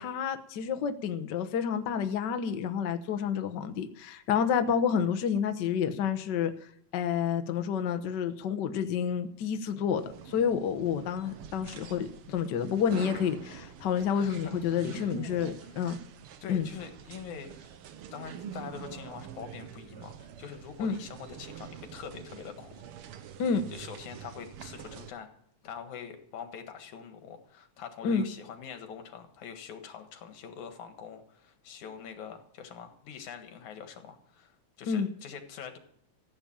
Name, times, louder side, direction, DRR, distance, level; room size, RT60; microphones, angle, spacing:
voice 1, 0.0-6.5 6.9-16.0 16.5-16.7 20.8-20.9 23.4-23.6 28.0-28.3 34.9-35.1, left 7 dB, 60° left, 8 dB, 1.2 m, -29 dB
sound 1, 10.0-25.1, right 9 dB, 65° right, 1.5 m, -46 dB
voice 2, 14.1-14.8 15.6-15.7 16.4-17.7 18.1-22.8 23.7-25.3 25.6-35.8, left 7 dB, 85° left, 7 dB, 3.0 m, -44 dB
15.5 x 7.9 x 8.8 m, 0.69 s
omnidirectional pair, 3.3 m